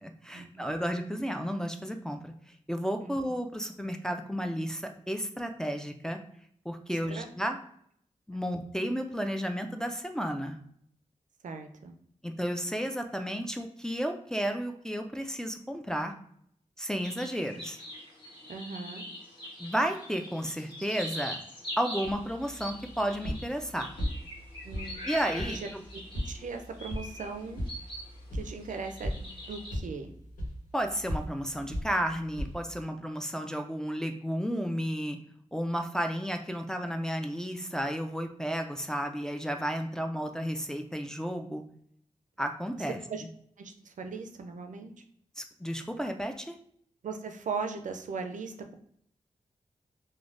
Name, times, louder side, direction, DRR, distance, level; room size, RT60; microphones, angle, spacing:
voice 1, 0.0-2.3 2.7-6.2 6.7-7.6 8.3-10.6 12.2-16.1 16.8-17.8 19.6-21.4 21.8-23.9 25.1-25.8 30.7-35.2 35.5-41.6 42.4-43.0 45.4-46.6, equal, 5° left, 4 dB, 0.4 m, -32 dB
voice 2, 11.4-11.9 18.5-19.0 24.6-25.1 25.5-27.6 28.3-30.1 43.1-43.2 43.6-44.9 47.0-48.7, right 5 dB, 75° right, 5 dB, 0.4 m, -39 dB
sound 1, 17.0-28.1 28.5-29.7, equal, 35° left, 1.4 m, -43 dB
sound 2, 22.0-32.8, equal, 80° left, 1.0 m, -39 dB
3.2 x 2.2 x 2.5 m, 0.66 s
cardioid pair, 65°, 13 cm